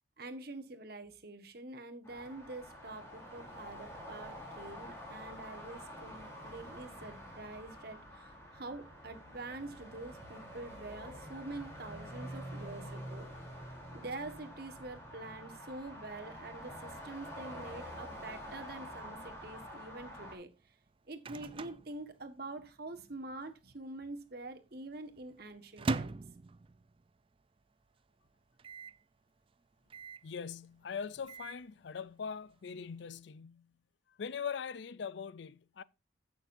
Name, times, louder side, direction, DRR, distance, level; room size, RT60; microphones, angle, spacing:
voice 1, 0.2-13.3 13.9-20.5 21.1-26.2, right 2 dB, 50° right, 1.5 m, -46 dB
sound 1, 2.0-20.3, equal, 15° left, 3.3 m, -47 dB
Microwave oven, 20.6-22.8 23.1-23.2 23.4-23.9 24.4-27.2 27.6-27.7 27.9-28.0 28.6-29.0 29.9-30.3 31.0-31.7, right 3 dB, 30° right, 0.4 m, -41 dB
voice 2, 30.2-33.7 34.2-35.8, left 6 dB, 65° left, 0.4 m, -41 dB
16.0 x 6.6 x 2.6 m
head